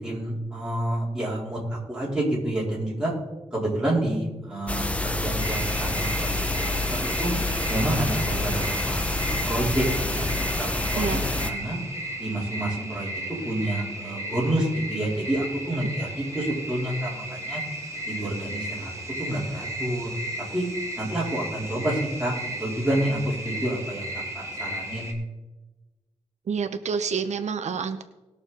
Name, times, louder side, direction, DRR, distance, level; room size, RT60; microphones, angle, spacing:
voice 1, 0.0-3.1 3.5-7.3 7.7-10.7 10.9-11.8 12.2-13.1 13.4-17.6 18.1-18.9 19.2-20.1 20.5-20.7 21.0-25.1, right 1 dB, 5° right, -6 dB, 4.1 m, -29 dB
sound 1, 4.7-11.5, left 2 dB, 10° left, 0.7 m, -27 dB
sound 2, 5.4-25.1, right 1 dB, 25° right, 2.0 m, -35 dB
voice 2, 26.5-28.0, right 6 dB, 85° right, 8 dB, 0.7 m, -28 dB
19.5 x 6.7 x 4.2 m, 1.1 s
wide cardioid pair, 150°, 11 cm